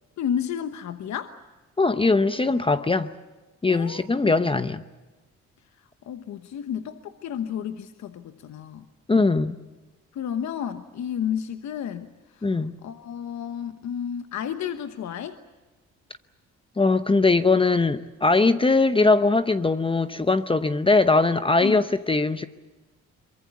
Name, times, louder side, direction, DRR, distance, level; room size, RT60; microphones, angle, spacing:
voice 1, 0.2-1.3 3.7-4.4 6.1-8.8 10.1-12.1 12.4-15.4 21.6-21.8, left 8 dB, 65° left, 1.1 m, -31 dB
voice 2, 1.8-3.1 3.6-4.8 9.1-9.5 12.4-12.8 16.8-22.5, left 3 dB, 20° left, 0.8 m, -21 dB
23.5 x 23.0 x 8.3 m
cardioid pair, 90°, 30 cm